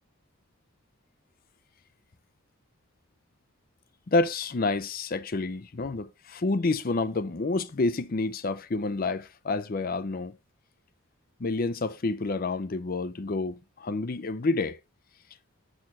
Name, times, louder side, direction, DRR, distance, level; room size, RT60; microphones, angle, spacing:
voice 1, 4.1-10.3 11.4-14.8, left 3 dB, 45° left, 0.5 m, -29 dB
7.5 x 6.4 x 4.2 m
head